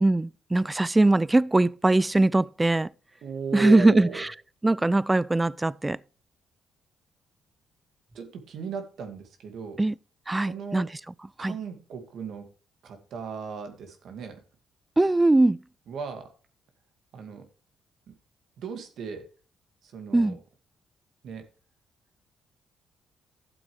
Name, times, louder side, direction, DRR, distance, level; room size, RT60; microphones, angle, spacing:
voice 1, 0.0-2.9 3.5-4.3 4.6-6.0 9.8-9.9 10.3-10.9 11.4-11.6 15.0-15.6 20.1-20.4, right 2 dB, 15° right, 0.3 m, -21 dB
voice 2, 3.2-4.2 8.1-9.8 10.4-10.9 11.4-12.5 12.8-14.4 15.9-16.3 17.1-17.5 18.1-18.2 18.6-19.3 19.8-20.4 21.2-21.5, right 6 dB, 70° right, 2.1 m, -36 dB
12.5 x 7.8 x 3.3 m
cardioid pair, 90°, 0 cm